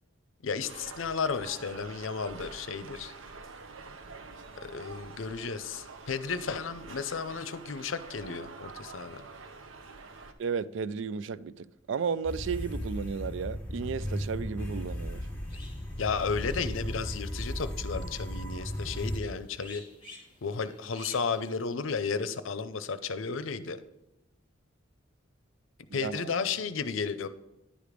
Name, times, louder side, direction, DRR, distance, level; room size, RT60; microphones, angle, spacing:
voice 1, 0.4-3.1 4.6-9.2 16.0-19.8 20.4-23.8 25.9-27.3, left 5 dB, 80° left, 0.6 m, -33 dB
sound 1, 0.6-10.3, right 4 dB, 80° right, 0.8 m, -47 dB
voice 2, 10.4-15.2 25.9-26.2, right 6 dB, 65° right, 0.4 m, -33 dB
sound 2, 12.2-19.2, equal, 10° left, 1.5 m, -36 dB
sound 3, 14.9-21.7, left 2 dB, 25° left, 2.6 m, -54 dB
10.0 x 5.0 x 5.1 m
head